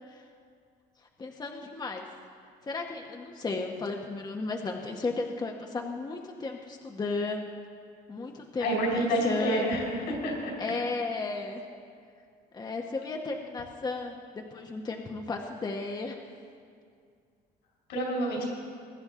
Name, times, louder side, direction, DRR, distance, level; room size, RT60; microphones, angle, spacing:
voice 1, 1.0-2.1 2.6-7.6 8.1-9.8 10.6-11.6 12.5-16.2, left 3 dB, 25° left, 2 dB, 0.9 m, -34 dB
voice 2, 8.6-10.5 17.9-18.4, right 1 dB, 80° left, -1 dB, 4.2 m, -28 dB
21.5 x 10.5 x 3.6 m, 2.2 s
cardioid pair, 110°, 17 cm